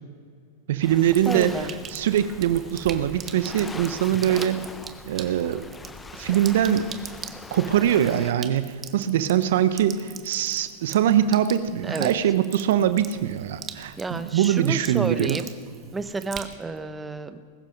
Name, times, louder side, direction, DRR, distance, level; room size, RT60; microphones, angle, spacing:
voice 1, 0.7-1.5 1.9-4.6 5.1-5.6 6.2-6.9 7.5-15.4, right 10 dB, 70° right, 11 dB, 0.8 m, -22 dB
Waves surf, 0.8-8.3, left 3 dB, 15° left, 0.7 m, -41 dB
Sink (filling or washing), 0.9-16.8, right 8 dB, 30° right, 1.2 m, -43 dB
voice 2, 1.2-1.7 11.8-12.1 14.0-15.5 15.9-17.4, right 3 dB, 15° right, 10 dB, 1.0 m, -30 dB
20.5 x 12.0 x 5.3 m, 2.1 s
hypercardioid pair, 110°, 0 cm